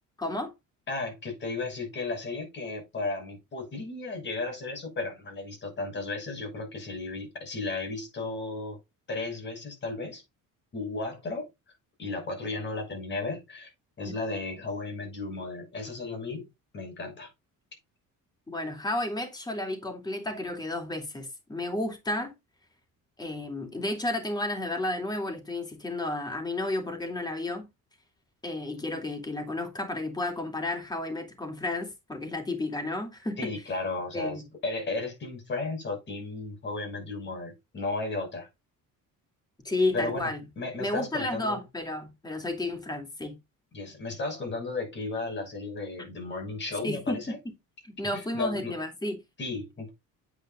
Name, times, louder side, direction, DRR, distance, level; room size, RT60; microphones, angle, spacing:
voice 1, 0.2-0.5 14.1-14.2 18.5-22.3 23.2-27.7 28.4-33.5 34.1-34.4 39.6-40.4 40.8-43.4 46.8-47.4 47.8-49.2, left 2 dB, 10° left, 2.8 m, -32 dB
voice 2, 0.9-8.8 9.1-10.2 10.7-11.5 12.0-13.7 14.0-16.5 16.7-17.3 33.4-38.5 39.9-41.6 43.7-47.4 48.1-48.7 49.4-49.9, left 3 dB, 35° left, 6.0 m, -34 dB
9.2 x 8.7 x 2.5 m
cardioid pair, 155°, 33 cm